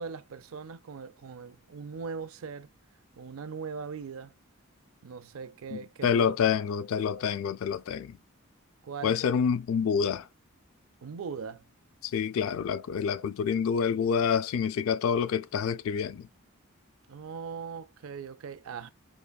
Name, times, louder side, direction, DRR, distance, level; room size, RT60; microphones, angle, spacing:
voice 1, 0.0-2.7 3.2-4.3 5.0-6.4 8.8-9.2 11.0-11.6 17.1-18.9, right 5 dB, 80° right, 0.4 m, -40 dB
voice 2, 5.7-8.2 9.0-10.2 12.0-16.3, left 7 dB, 75° left, 0.3 m, -27 dB
3.8 x 3.2 x 2.2 m
head